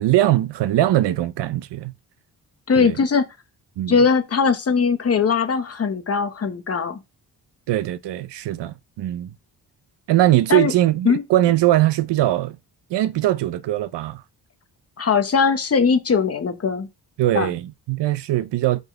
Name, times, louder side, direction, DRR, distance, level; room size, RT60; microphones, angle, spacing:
voice 1, 0.0-1.9 2.8-3.0 3.8-4.0 7.7-9.3 10.1-12.6 12.9-14.2 17.2-18.8, right 14 dB, 85° right, 0.7 m, -21 dB
voice 2, 2.7-3.3 3.9-7.0 10.5-10.7 11.0-11.2 15.0-16.9 17.3-17.5, left 5 dB, 35° left, 1.0 m, -20 dB
5.4 x 4.0 x 4.5 m
wide cardioid pair, 125°, 41 cm